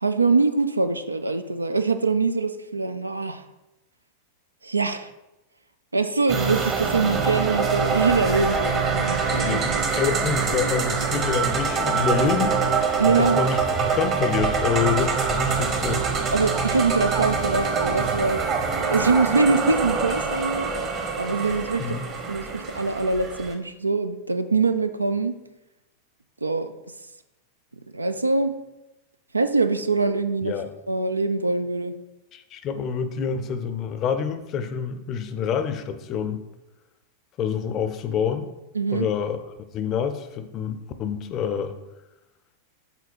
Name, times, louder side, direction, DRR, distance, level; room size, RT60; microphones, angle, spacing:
voice 1, 0.0-3.4 4.6-5.1 5.9-9.6 13.0-13.4 16.3-18.4 18.8-20.7 21.2-22.0 22.3-25.4 26.4-26.7 27.9-28.5 29.3-30.5 30.9-32.0 38.7-39.1, right 4 dB, 80° right, 10 dB, 0.4 m, -23 dB
sound 1, 6.3-23.5, right 5 dB, 30° right, 0.9 m, -25 dB
voice 2, 9.4-12.6 13.1-13.6 14.0-16.0 21.8-22.1 30.4-30.7 32.3-36.4 37.4-38.5 38.9-39.4 39.7-41.7, left 7 dB, 35° left, 9 dB, 0.5 m, -27 dB
7.1 x 3.8 x 4.5 m, 0.97 s
figure-of-eight pair, 90°, 0 cm